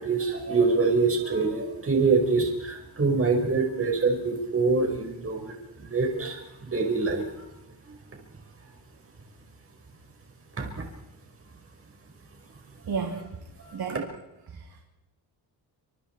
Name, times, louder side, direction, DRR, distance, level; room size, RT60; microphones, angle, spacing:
voice 1, 0.0-7.3 10.6-10.8 13.6-14.0, right 4 dB, 30° right, 1 dB, 5.0 m, -25 dB
voice 2, 12.8-13.3 13.7-14.1 14.5-14.8, right 6 dB, 55° right, 1 dB, 3.3 m, -32 dB
29.0 x 26.0 x 4.6 m, 0.89 s
wide cardioid pair, 140°, 44 cm